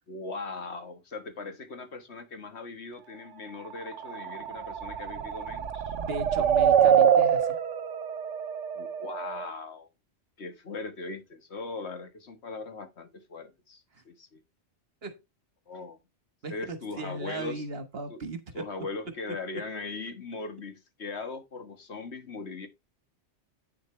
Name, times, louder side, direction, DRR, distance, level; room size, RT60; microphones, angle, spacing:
voice 1, 0.1-6.0 8.8-9.9 10.4-14.4 15.7-16.0 16.5-17.6 18.1-18.2 18.5-22.7, left 3 dB, 65° left, 1.7 m, -39 dB
sound 1, 3.6-9.4, right 8 dB, 85° right, 1.1 m, -25 dB
voice 2, 6.0-7.6 13.9-14.0 15.0-15.2 16.4-18.6, right 2 dB, 60° right, 1.6 m, -37 dB
8.8 x 6.9 x 3.2 m
omnidirectional pair, 1.2 m